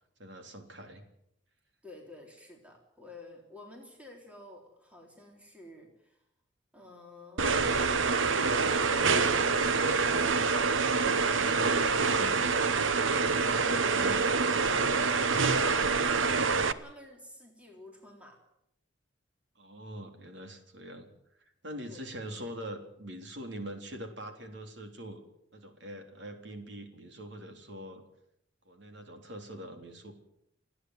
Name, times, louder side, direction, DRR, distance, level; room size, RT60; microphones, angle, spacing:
voice 1, 0.2-1.0 11.2-12.4 13.1-15.1 19.6-21.1 21.4-25.2 25.5-28.0 28.7-30.1, equal, 65° right, 5 dB, 3.6 m, -43 dB
voice 2, 1.8-6.2 6.7-10.1 15.6-18.4 21.9-22.1, left 2 dB, 5° right, 0 dB, 3.6 m, -50 dB
sound 1, 7.4-16.7, right 4 dB, 80° right, 1.0 m, -26 dB
30.0 x 10.0 x 9.5 m, 0.78 s
head